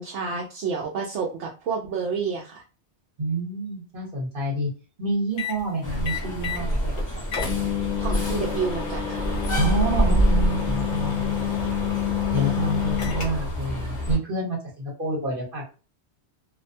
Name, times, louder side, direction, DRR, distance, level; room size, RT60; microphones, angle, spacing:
voice 1, 0.0-2.6 8.0-9.4, right 5 dB, 90° right, -1 dB, 0.9 m, -30 dB
voice 2, 3.2-4.7 5.0-6.9 9.5-11.5 12.3-15.7, right 1 dB, 50° right, -3 dB, 1.3 m, -28 dB
sound 1, 5.4-5.6 6.0-6.7 7.0-7.1 7.3-13.6, left 9 dB, 65° left, 0.8 m, -28 dB
sound 2, 5.8-14.2, right 1 dB, 20° left, 0.7 m, -27 dB
2.6 x 2.1 x 2.6 m, 0.33 s
omnidirectional pair, 1.2 m